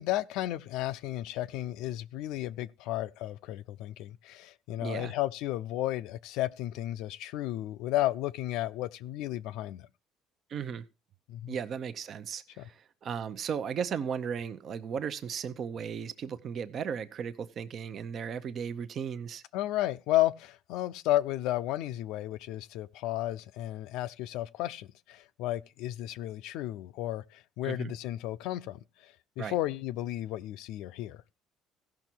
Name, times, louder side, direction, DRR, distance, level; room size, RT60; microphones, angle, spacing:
voice 1, 0.0-9.9 11.3-11.6 12.6-12.7 19.5-31.2, left 14 dB, 80° left, 0.5 m, -33 dB
voice 2, 4.8-5.2 10.5-10.8 11.5-19.4 27.6-27.9 29.4-29.6, right 7 dB, 50° right, 0.7 m, -36 dB
15.5 x 6.0 x 4.5 m
cardioid pair, 105°, 0 cm